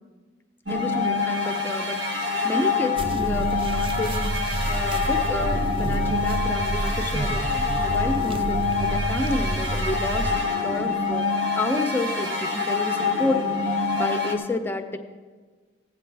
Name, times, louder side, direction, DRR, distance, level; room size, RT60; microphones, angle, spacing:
voice 1, 0.7-7.5 7.8-10.3 10.6-11.3 11.5-15.0, left 1 dB, 10° left, 6 dB, 0.7 m, -30 dB
sound 1, 0.7-14.3, left 4 dB, 80° right, 1.5 m, -26 dB
sound 2, 3.0-10.4, right 2 dB, 30° right, 0.4 m, -29 dB
16.5 x 8.6 x 3.4 m, 1.5 s
head